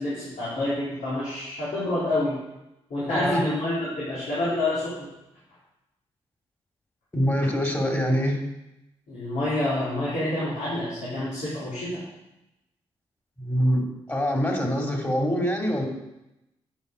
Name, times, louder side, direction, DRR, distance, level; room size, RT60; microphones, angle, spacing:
voice 1, 0.0-2.4 2.9-5.1 9.1-12.0, left 1 dB, 75° left, -10 dB, 3.3 m, -28 dB
voice 2, 3.1-3.4 7.1-8.4 13.4-15.9, equal, 20° left, 1 dB, 2.5 m, -24 dB
9.4 x 5.7 x 5.0 m, 0.92 s
supercardioid pair, 45°, 12 cm